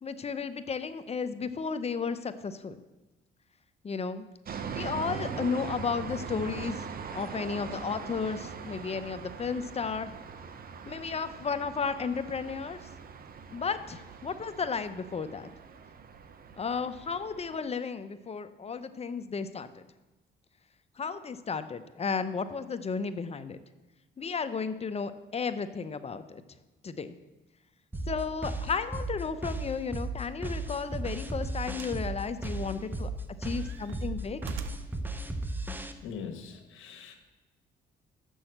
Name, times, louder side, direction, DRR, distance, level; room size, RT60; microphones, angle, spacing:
voice 1, 0.0-2.8 3.8-4.3 4.7-6.8 7.1-10.1 10.9-12.8 13.5-15.5 16.6-19.7 21.0-23.6 24.2-26.4 26.8-27.1 28.0-33.1 33.4-34.4, left 5 dB, 30° left, 11 dB, 0.7 m, -33 dB
sound 1, 4.4-17.6, right 6 dB, 50° right, 0.8 m, -41 dB
sound 2, 27.9-35.9, right 2 dB, 10° right, 0.8 m, -35 dB
sound 3, 31.7-32.1 32.4-33.1 33.5-35.0 35.9-36.0, right 6 dB, 85° right, 0.7 m, -46 dB
voice 2, 36.0-37.2, left 6 dB, 85° left, 6 dB, 1.3 m, -42 dB
6.9 x 6.3 x 7.8 m, 1.1 s
cardioid pair, 90°, 20 cm